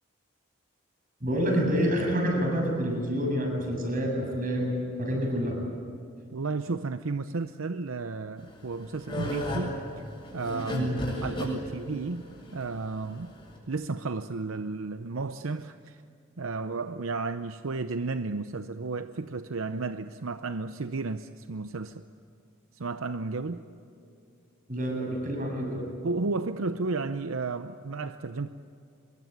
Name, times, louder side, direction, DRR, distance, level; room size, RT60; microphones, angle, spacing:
voice 1, 1.2-5.6 10.7-11.0 24.7-25.8, equal, 40° right, 1 dB, 7.2 m, -28 dB
voice 2, 6.3-9.8 10.3-12.2 12.5-13.3 13.7-16.0 16.4-22.0 22.7-23.6 26.0-28.5, right 3 dB, 80° right, 10 dB, 0.7 m, -33 dB
sound 1, 8.4-13.6, equal, 25° left, 7.6 m, -34 dB
25.0 x 22.0 x 9.2 m, 2.3 s
head